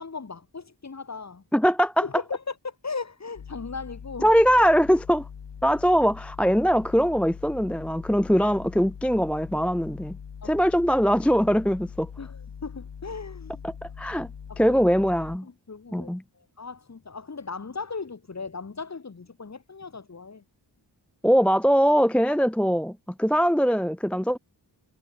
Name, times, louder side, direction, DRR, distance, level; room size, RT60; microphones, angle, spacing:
voice 1, 0.0-1.4 2.0-4.3 10.4-10.5 12.2-13.6 14.5-14.8 15.4-20.4, left 4 dB, 40° left, 4.6 m, -37 dB
voice 2, 1.5-2.0 4.2-5.3 5.6-10.2 10.4-12.1 13.6-14.3 14.6-15.5 15.9-16.2 21.2-24.4, equal, 5° left, 0.4 m, -22 dB
sound 1, 3.4-15.4, left 7 dB, 80° left, 6.3 m, -42 dB
wide cardioid pair, 160°, 42 cm